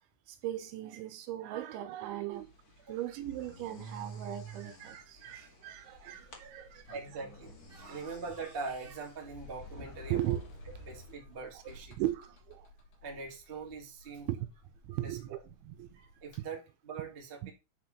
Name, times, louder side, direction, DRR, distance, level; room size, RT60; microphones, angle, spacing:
voice 1, 0.3-2.5 2.9-7.0 7.8-8.0 10.1-10.4 12.0-12.7 14.3-14.4 14.8-16.0 17.4-17.5, right 13 dB, 80° right, 3.0 m, -37 dB
sound 1, 2.3-11.1, right 4 dB, 85° left, 0.8 m, -52 dB
Sliding door, 5.8-16.4, left 2 dB, 60° left, 5.4 m, -54 dB
voice 2, 6.9-10.4 10.8-12.0 13.0-14.3 15.0-15.4 15.9-17.5, right 4 dB, 35° right, 0.9 m, -42 dB
9.4 x 4.9 x 5.8 m
omnidirectional pair, 5.7 m